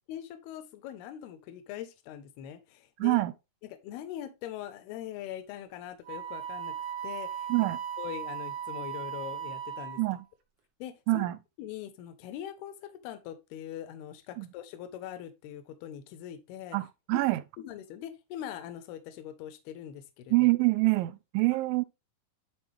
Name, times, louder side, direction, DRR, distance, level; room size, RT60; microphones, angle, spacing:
voice 1, 0.1-3.2 3.6-6.7 7.0-7.7 8.0-10.0 10.8-11.3 11.6-16.8 17.1-17.2 17.6-20.5, left 11 dB, 80° left, 2.9 m, -42 dB
voice 2, 3.0-3.3 7.5-7.8 10.0-10.3 11.1-11.4 14.4-14.5 16.7-17.4 20.3-21.8, right 22 dB, 85° right, 2.1 m, -26 dB
Wind instrument woodwind instrument, 6.0-10.2, right 8 dB, 65° right, 1.5 m, -37 dB
11.5 x 4.4 x 3.3 m
omnidirectional pair, 4.5 m